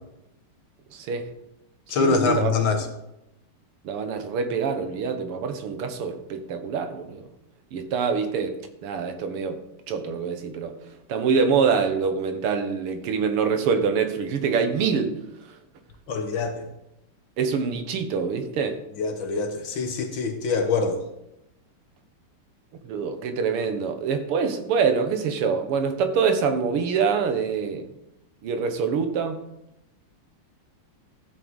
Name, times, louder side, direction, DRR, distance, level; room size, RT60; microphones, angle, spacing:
voice 1, 0.9-1.3 2.0-2.5 3.8-7.3 7.7-9.6 9.9-10.7 11.1-15.2 17.4-18.8 22.8-27.9 28.4-29.4, right 5 dB, 85° right, 2.0 m, -25 dB
voice 2, 1.9-2.9 16.1-16.7 19.0-21.0, left 4 dB, 65° left, 1.8 m, -24 dB
14.0 x 7.7 x 4.0 m
omnidirectional pair, 2.4 m